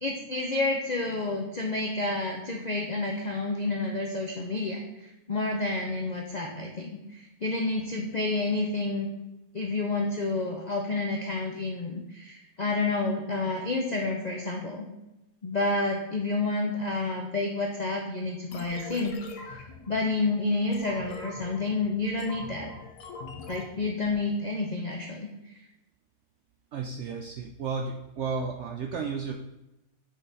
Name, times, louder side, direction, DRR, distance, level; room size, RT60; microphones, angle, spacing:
voice 1, 0.0-4.8 5.3-9.1 9.5-14.9 15.4-19.1 19.9-22.7 23.5-25.3, left 3 dB, 60° left, 1 dB, 0.4 m, -29 dB
sound 1, 18.5-24.2, left 4 dB, 85° left, 1.4 m, -43 dB
voice 2, 26.7-29.3, right 5 dB, 70° right, 2 dB, 0.6 m, -33 dB
6.2 x 4.6 x 4.0 m, 0.94 s
omnidirectional pair, 1.7 m